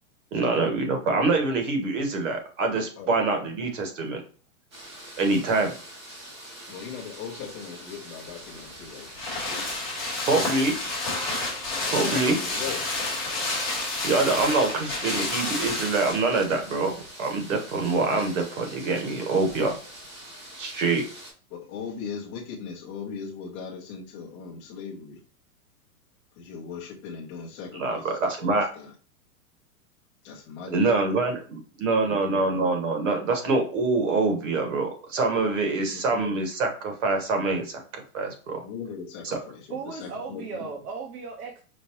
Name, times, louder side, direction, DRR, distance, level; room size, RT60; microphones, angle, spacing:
voice 1, 0.3-4.2 5.2-5.7 10.3-10.8 11.9-12.4 14.0-19.7 20.6-21.0 27.7-28.7 30.7-38.6 39.2-39.4, right 3 dB, 55° right, 4 dB, 1.2 m, -25 dB
voice 2, 3.0-3.5 5.4-5.6 6.7-9.1 9.4-9.6 11.8-12.8 21.5-25.2 26.4-28.9 30.2-31.2 32.0-32.7 35.9-36.4 38.2-38.3 38.6-40.6, left 6 dB, 20° left, -4 dB, 0.7 m, -39 dB
sound 1, 4.7-21.3, right 1 dB, 20° right, 0.5 m, -45 dB
sound 2, 8.4-16.5 16.8-16.9, left 2 dB, ahead, 1.1 m, -30 dB
voice 3, 39.7-41.6, right 4 dB, 75° right, 1 dB, 1.0 m, -36 dB
5.2 x 2.2 x 2.9 m, 0.39 s
supercardioid pair, 175°, 45 cm